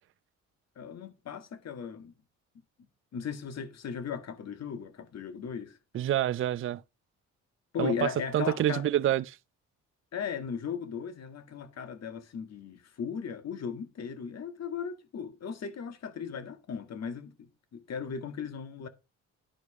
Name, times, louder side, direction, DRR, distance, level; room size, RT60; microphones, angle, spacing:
voice 1, 0.8-2.1 3.1-5.8 7.7-8.9 10.1-18.9, left 7 dB, 60° left, 1.8 m, -37 dB
voice 2, 5.9-6.8 7.8-9.2, right 12 dB, 45° right, 0.5 m, -27 dB
11.0 x 4.8 x 4.8 m
cardioid pair, 90°, 30 cm